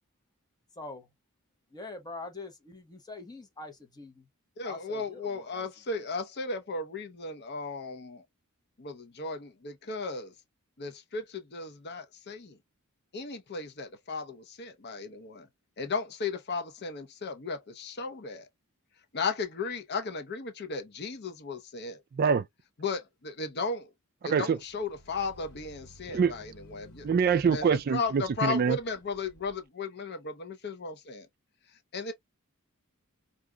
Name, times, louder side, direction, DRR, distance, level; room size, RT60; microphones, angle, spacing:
voice 1, 0.7-1.1 1.7-4.3 4.6-5.7 5.9-6.0, left 3 dB, 20° left, 1.0 m, -44 dB
voice 2, 4.6-8.2 8.8-10.3 10.8-12.6 13.1-15.5 15.8-18.5 19.1-22.0 22.8-23.9 24.2-27.1 27.5-27.7 27.9-31.3 31.9-32.1, left 4 dB, 50° left, 0.7 m, -35 dB
voice 3, 22.1-22.5 24.2-24.6 26.1-26.3 27.0-28.8, right 6 dB, 45° right, 0.3 m, -25 dB
sound 1, 24.6-29.6, right 1 dB, 90° left, 1.2 m, -54 dB
4.8 x 2.5 x 2.2 m
head